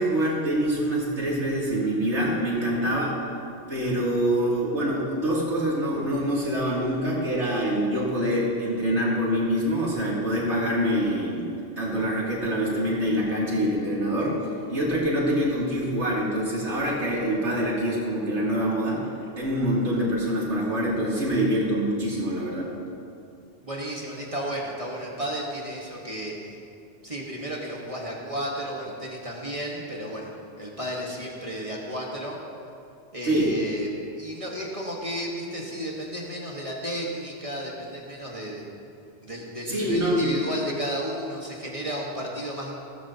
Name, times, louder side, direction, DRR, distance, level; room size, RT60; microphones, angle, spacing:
voice 1, 0.0-3.2 3.7-11.5 11.8-14.4 14.7-19.0 19.4-22.7 33.2-33.5 39.7-40.4, equal, 80° right, -6 dB, 3.2 m, -25 dB
voice 2, 23.6-26.5 27.0-30.3 30.6-32.4 33.1-33.9 34.2-38.6 39.2-42.7, equal, 30° right, -3 dB, 1.6 m, -33 dB
17.5 x 13.5 x 2.9 m, 2.5 s
omnidirectional pair, 1.2 m